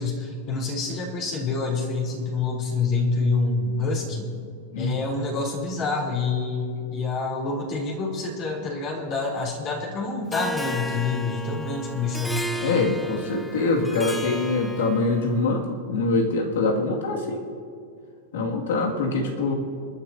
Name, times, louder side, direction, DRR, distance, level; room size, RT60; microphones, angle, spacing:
voice 1, 0.0-4.3 4.8-12.4, left 3 dB, 45° left, -2 dB, 3.7 m, -27 dB
Harp, 10.3-15.3, equal, 5° left, 0.9 m, -34 dB
voice 2, 12.6-17.4 18.3-19.5, left 3 dB, 80° left, 0 dB, 2.4 m, -24 dB
27.5 x 10.5 x 2.9 m, 2.3 s
hypercardioid pair, 120°, 0 cm